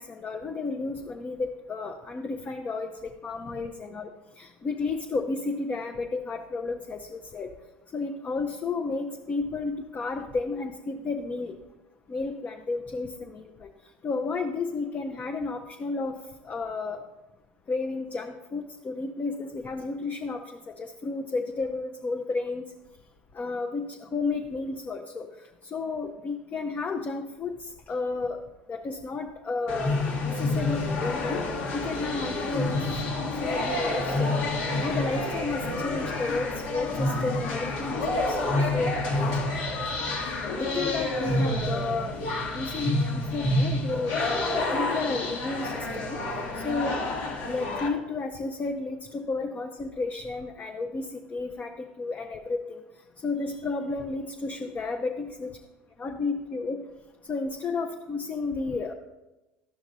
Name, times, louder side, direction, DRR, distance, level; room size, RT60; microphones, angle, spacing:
voice 1, 0.0-4.1 4.4-7.5 7.9-11.5 12.1-13.7 14.0-17.0 17.7-22.6 23.3-25.3 25.7-27.6 27.9-28.4 28.7-31.4 31.7-32.9 33.4-34.4 34.8-39.4 40.5-42.2 42.5-43.0 43.3-46.2 46.6-47.0 47.4-52.8 53.2-55.5 56.0-56.8 57.3-58.9, left 3 dB, 35° left, 3 dB, 0.6 m, -32 dB
sound 1, 29.7-47.9, left 2 dB, 75° left, 1.4 m, -28 dB
12.5 x 5.9 x 2.6 m, 1.0 s
hypercardioid pair, 80°, 5 cm